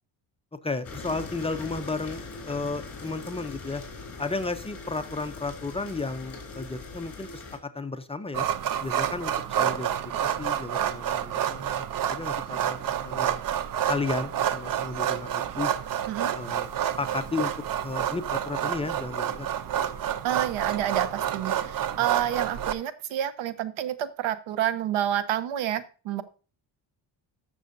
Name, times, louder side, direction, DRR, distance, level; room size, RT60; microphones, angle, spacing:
voice 1, 0.6-3.8 4.2-8.5 8.8-13.4 13.9-15.7 16.3-17.5 17.8-19.6, left 3 dB, 15° left, 8 dB, 0.6 m, -33 dB
sound 1, 0.8-7.6, left 3 dB, 30° left, 3.5 m, -41 dB
sound 2, 8.3-22.7, right 10 dB, 45° right, 0.6 m, -29 dB
voice 2, 16.1-16.4 20.2-26.2, right 11 dB, 90° right, 14 dB, 0.9 m, -29 dB
13.5 x 6.6 x 2.6 m, 0.36 s
cardioid pair, 130°, 46 cm